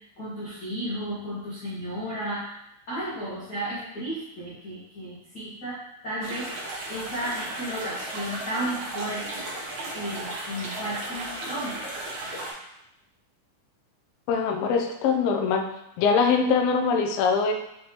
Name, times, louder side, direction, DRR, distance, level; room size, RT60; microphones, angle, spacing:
voice 1, 0.2-5.8 6.0-6.5 6.9-9.5 9.9-11.9, right 1 dB, 60° left, -9 dB, 1.0 m, -33 dB
sound 1, 6.2-12.5, right 2 dB, 60° right, 1.5 m, -35 dB
voice 2, 14.3-15.6 16.0-17.5, left 5 dB, 85° left, 2 dB, 1.4 m, -22 dB
5.5 x 3.4 x 2.8 m, 0.83 s
omnidirectional pair, 3.5 m